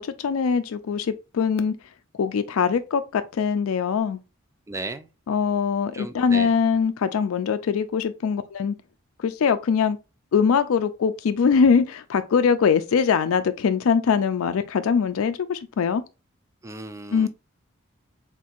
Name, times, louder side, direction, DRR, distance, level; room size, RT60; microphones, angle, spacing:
voice 1, 0.0-1.8 2.2-4.2 5.3-8.7 9.2-10.0 10.3-16.0 17.1-17.3, left 6 dB, 85° left, 0.4 m, -22 dB
voice 2, 4.7-5.1 5.9-6.5 16.6-17.3, right 3 dB, 15° right, 0.4 m, -35 dB
4.3 x 3.7 x 2.4 m
head